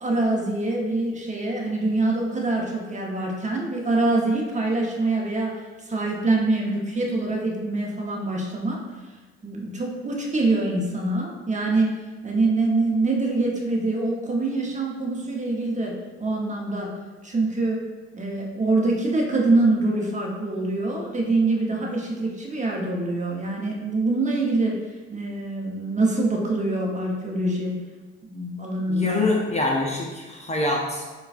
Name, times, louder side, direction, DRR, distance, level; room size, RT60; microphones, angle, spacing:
voice 1, 0.0-8.8 9.4-11.9 12.2-15.9 16.2-16.9 17.2-17.8 18.1-24.8 25.1-27.7 28.2-29.2, right 2 dB, 25° right, -1 dB, 0.9 m, -24 dB
voice 2, 28.9-31.1, left 2 dB, 20° left, -1 dB, 0.5 m, -25 dB
6.6 x 2.3 x 2.5 m, 1.3 s
supercardioid pair, 70°, 30 cm